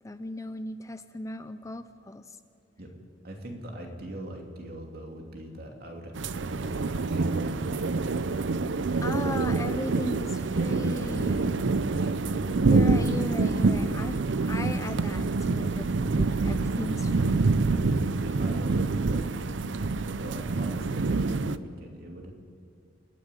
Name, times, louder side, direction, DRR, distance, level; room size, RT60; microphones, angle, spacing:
voice 1, 0.0-2.4 9.0-11.5 12.7-17.4, left 1 dB, 15° left, 10 dB, 0.5 m, -37 dB
voice 2, 3.2-8.3 10.9-13.1 17.6-22.3, right 1 dB, 55° right, 2 dB, 2.8 m, -42 dB
sound 1, 6.1-21.6, right 3 dB, 75° right, 0.6 m, -26 dB
27.5 x 10.0 x 9.9 m, 2.4 s
head